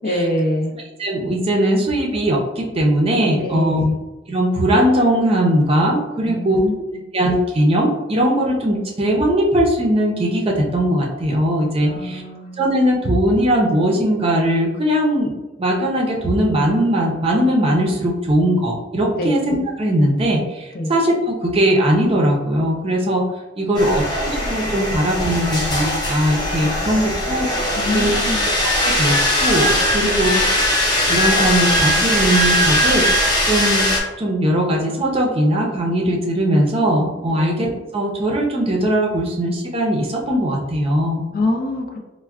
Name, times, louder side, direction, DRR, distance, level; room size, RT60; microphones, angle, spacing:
voice 1, 0.0-0.7 3.4-4.0 6.2-6.7 11.8-12.6 19.2-19.4 20.7-20.9 23.6-24.0 27.8-28.5 30.0-30.5 37.3-37.5 41.3-42.0, left 1 dB, 50° left, 1 dB, 0.5 m, -24 dB
voice 2, 1.0-3.8 4.3-6.6 7.1-12.2 12.6-15.3 15.6-23.2 23.6-24.0 24.3-27.5 27.9-30.3 31.1-33.9 34.2-41.2, right 1 dB, 30° right, -1 dB, 0.6 m, -19 dB
sound 1, 23.8-34.0, left 1 dB, 25° left, 0.8 m, -19 dB
4.3 x 2.1 x 2.3 m, 1.1 s
head